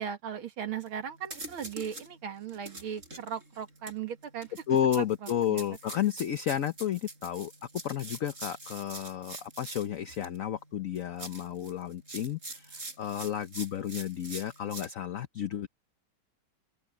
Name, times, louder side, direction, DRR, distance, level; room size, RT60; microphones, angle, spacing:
voice 1, 0.0-4.5 4.9-5.6, right 8 dB, 90° right, 2.5 m, -38 dB
sound 1, 0.9-1.0 1.3-2.1 2.5-10.4 11.0-14.9, right 2 dB, 35° right, 8.0 m, -44 dB
voice 2, 4.7-7.5 7.8-15.7, left 10 dB, 60° left, 0.9 m, -32 dB
open air
omnidirectional pair, 2.2 m